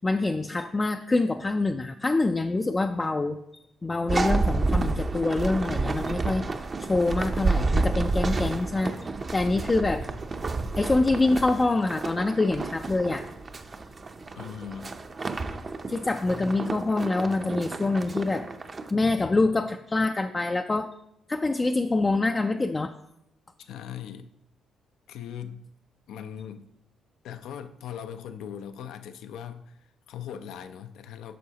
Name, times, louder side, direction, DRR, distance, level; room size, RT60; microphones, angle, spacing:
voice 1, 0.0-3.4 3.8-6.5 6.9-9.0 9.3-10.1 10.8-13.2 15.9-18.5 18.9-20.9 21.3-22.9, left 2 dB, 25° left, 5 dB, 0.3 m, -25 dB
sound 1, 4.1-18.9, right 3 dB, 35° right, 0.6 m, -30 dB
voice 2, 14.4-14.9 23.6-24.3 25.1-25.7 26.1-26.7 27.2-31.4, left 9 dB, 85° left, 10 dB, 0.5 m, -40 dB
9.3 x 6.1 x 2.9 m, 0.80 s
cardioid pair, 90°, 0 cm